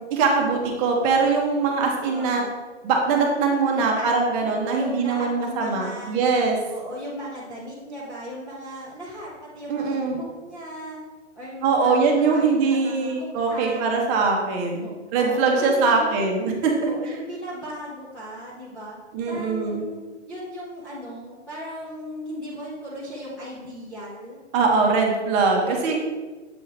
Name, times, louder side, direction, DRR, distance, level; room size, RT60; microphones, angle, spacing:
voice 1, 0.0-2.4 2.8-6.6 9.7-10.2 11.6-16.9 19.1-19.8 24.5-26.0, right 4 dB, 20° right, 1 dB, 0.9 m, -22 dB
voice 2, 2.1-2.6 3.7-4.5 4.8-6.2 6.7-11.0 11.3-13.8 14.8-16.4 16.8-19.0 19.3-24.4 25.7-26.1, equal, 5° left, -9 dB, 0.5 m, -37 dB
7.6 x 3.7 x 4.1 m, 1.3 s
hypercardioid pair, 135°, 36 cm